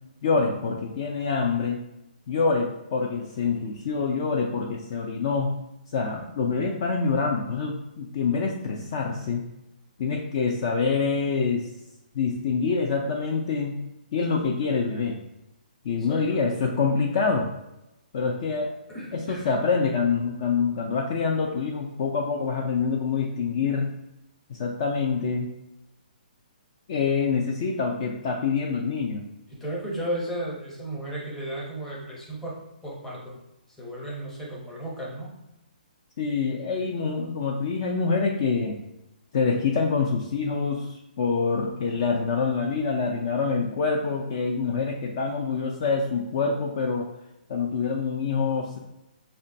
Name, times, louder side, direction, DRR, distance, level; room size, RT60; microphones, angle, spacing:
voice 1, 0.2-1.8 2.3-5.5 5.9-9.4 10.0-11.7 12.1-13.8 14.1-15.1 15.8-17.5 18.1-18.7 19.1-23.9 24.5-25.5 26.9-29.2 36.2-38.8 39.3-47.1 47.5-48.8, left 5 dB, 35° left, 1 dB, 0.3 m, -26 dB
voice 2, 15.9-16.5 18.9-19.5 29.5-33.3 33.8-35.3 36.8-36.9, right 1 dB, 5° left, -5 dB, 0.7 m, -34 dB
4.8 x 2.2 x 2.6 m, 0.90 s
hypercardioid pair, 165°, 5 cm